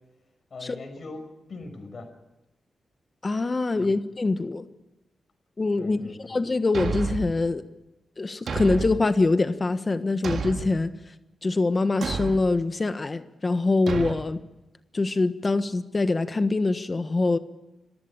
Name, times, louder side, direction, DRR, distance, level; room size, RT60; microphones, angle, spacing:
voice 1, 0.5-1.2 1.5-2.1 3.8-4.0 5.8-6.4, left 3 dB, 60° left, 6 dB, 5.7 m, -41 dB
voice 2, 3.2-4.7 5.6-6.0 6.3-7.6 8.2-10.9 11.4-14.4 14.9-17.4, left 3 dB, 35° left, 11 dB, 1.3 m, -24 dB
Thump thud, 6.7-7.4 8.5-9.1 10.2-10.8 12.0-12.4 13.9-14.2, right 4 dB, 75° right, 1.8 m, -30 dB
26.0 x 15.0 x 8.8 m, 0.98 s
cardioid pair, 75°, 0 cm